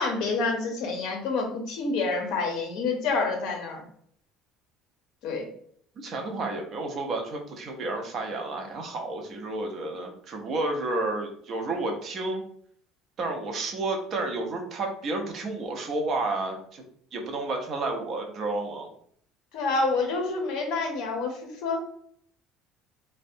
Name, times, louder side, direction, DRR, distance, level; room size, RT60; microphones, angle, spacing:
voice 1, 0.0-3.8 5.2-5.5 19.5-21.8, left 3 dB, 60° left, 3 dB, 0.6 m, -28 dB
voice 2, 6.0-12.4 13.2-16.8 17.1-18.9, right 2 dB, 30° right, 2 dB, 0.4 m, -31 dB
2.6 x 2.1 x 2.5 m, 0.63 s
cardioid pair, 180°, 0 cm